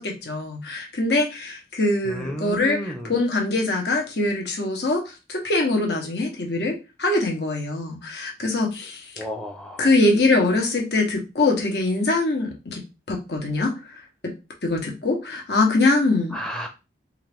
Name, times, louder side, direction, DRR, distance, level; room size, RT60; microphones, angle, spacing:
voice 1, 0.0-9.1 9.8-12.8 13.1-13.9 14.2-14.3 14.6-16.4, left 2 dB, 70° left, 1 dB, 1.1 m, -23 dB
voice 2, 2.0-3.1 9.2-9.9 16.3-16.7, equal, 5° left, 4 dB, 0.6 m, -32 dB
3.8 x 2.5 x 3.4 m, 0.28 s
head